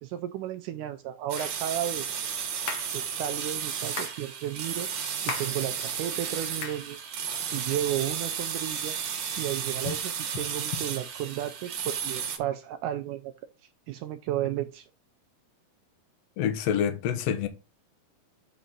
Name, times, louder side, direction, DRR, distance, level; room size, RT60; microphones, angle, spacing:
voice 1, 0.0-2.2 2.9-4.9 5.2-9.0 9.4-13.3 13.9-14.9, right 12 dB, 85° right, 1.8 m, -33 dB
sound 1, 1.3-12.4, right 7 dB, 60° right, 2.4 m, -33 dB
sound 2, 1.4-1.6 2.7-3.0 4.0-4.2 5.3-5.6 6.6-6.9, left 5 dB, 55° left, 1.7 m, -36 dB
voice 2, 16.4-17.5, left 8 dB, 70° left, 1.6 m, -27 dB
9.2 x 4.3 x 3.8 m
omnidirectional pair, 4.1 m